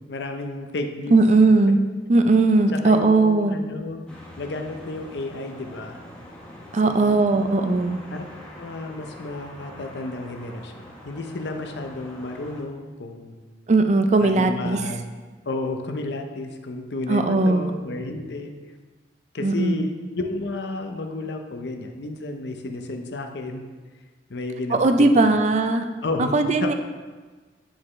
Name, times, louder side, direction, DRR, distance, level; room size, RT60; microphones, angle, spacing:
voice 1, 0.1-1.2 2.7-4.0 4.4-6.0 6.8-7.3 8.1-8.2 8.6-13.3 14.2-15.0 15.5-18.5 19.3-23.6 24.3-25.3 26.0-26.7, left 2 dB, 75° left, 4 dB, 0.6 m, -32 dB
voice 2, 1.1-1.8 2.1-3.6 6.7-8.0 13.7-14.8 17.1-17.7 19.4-19.9 24.7-25.9 26.2-26.7, right 3 dB, 40° right, 7 dB, 0.4 m, -18 dB
sound 1, 4.1-12.6, left 1 dB, 5° left, 1.0 m, -44 dB
9.8 x 3.9 x 3.2 m, 1.4 s
head